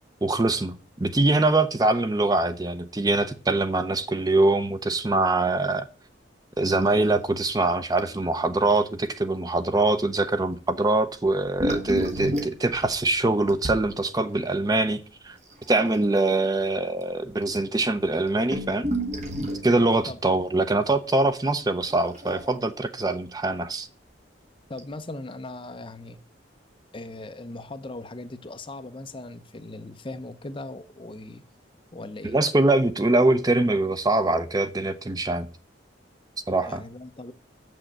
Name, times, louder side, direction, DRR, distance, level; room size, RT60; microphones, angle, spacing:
voice 1, 0.2-5.9 6.6-15.4 15.7-18.9 19.6-23.9 32.2-35.5 36.5-36.8, right 2 dB, 20° right, 0.5 m, -23 dB
sound 1, 6.7-7.3 7.6-7.7 8.0-8.2 8.7-8.8 11.3-13.8 15.5-16.2 17.0-17.1 17.3-17.4 18.0-19.7 21.9-22.8 24.1-24.2 24.8-24.9, right 1 dB, 35° right, 1.6 m, -31 dB
voice 2, 24.7-26.2 26.9-31.4 31.9-32.4 36.6-37.3, left 2 dB, 25° left, 0.6 m, -39 dB
7.1 x 6.3 x 7.8 m
head